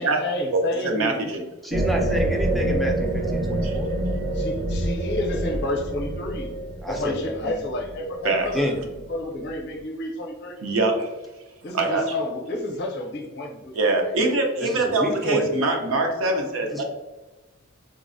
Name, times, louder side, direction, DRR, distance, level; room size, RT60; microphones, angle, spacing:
voice 1, 0.0-1.2 4.3-6.5 6.9-10.6 11.6-13.7 15.2-15.3, left 1 dB, 55° left, 2 dB, 0.5 m, -30 dB
voice 2, 0.5-1.4 3.6-3.8 8.2-8.5 10.6-11.1 11.7-12.0 13.7-16.8, right 2 dB, 75° right, 3 dB, 0.6 m, -23 dB
voice 3, 1.6-3.9 6.8-7.5 8.5-8.8 14.6-15.5 16.7-16.8, left 1 dB, ahead, 0 dB, 0.4 m, -29 dB
sound 1, 1.7-9.0, right 1 dB, 60° right, 1.0 m, -27 dB
3.7 x 2.0 x 2.5 m, 1.1 s
head